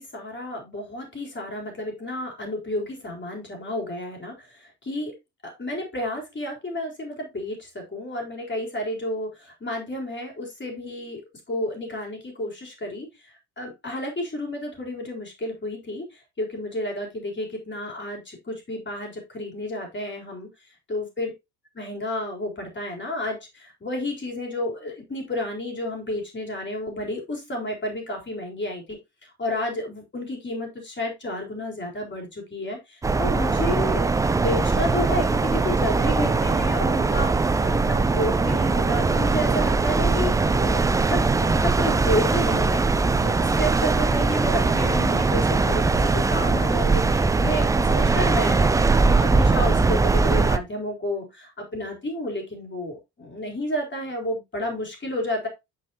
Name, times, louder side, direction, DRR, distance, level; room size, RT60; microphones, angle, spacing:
voice 1, 0.0-5.1 5.4-11.2 11.5-20.5 20.9-21.3 21.7-29.0 29.4-42.8 43.2-48.7 49.0-55.5, left 1 dB, 25° left, 1 dB, 4.0 m, -31 dB
sound 1, 33.0-50.6, right 3 dB, 10° right, 0.4 m, -21 dB
8.1 x 6.5 x 2.9 m, 0.22 s
figure-of-eight pair, 50°, 47 cm